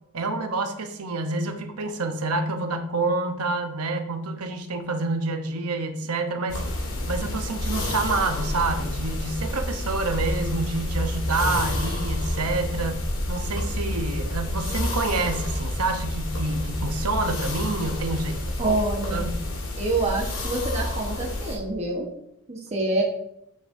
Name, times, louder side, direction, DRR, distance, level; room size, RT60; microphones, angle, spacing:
voice 1, 0.1-6.6 7.1-13.0 13.3-18.4 18.6-18.8 19.1-19.4, right 3 dB, 80° right, 6 dB, 0.9 m, -28 dB
sound 1, 6.5-21.6, left 1 dB, 65° left, 1.8 m, -29 dB
voice 2, 18.6-19.2 19.8-22.1 22.5-23.0, right 2 dB, 30° right, -2 dB, 1.2 m, -26 dB
8.9 x 6.3 x 2.7 m, 0.80 s
head